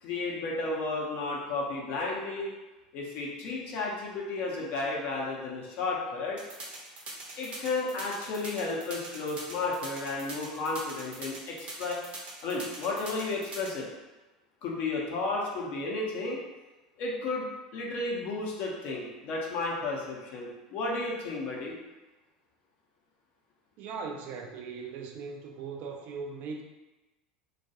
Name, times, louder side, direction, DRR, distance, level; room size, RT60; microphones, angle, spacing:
voice 1, 0.0-2.5 2.9-6.4 7.4-12.0 12.4-13.9 14.6-16.4 17.0-21.8, left 3 dB, 55° left, -3 dB, 0.7 m, -33 dB
sound 1, 6.4-13.7, right 2 dB, 35° right, 0.7 m, -42 dB
voice 2, 23.8-26.6, right 5 dB, 50° right, 3 dB, 0.3 m, -39 dB
2.3 x 2.2 x 2.7 m, 1.1 s
hypercardioid pair, 80°, 4 cm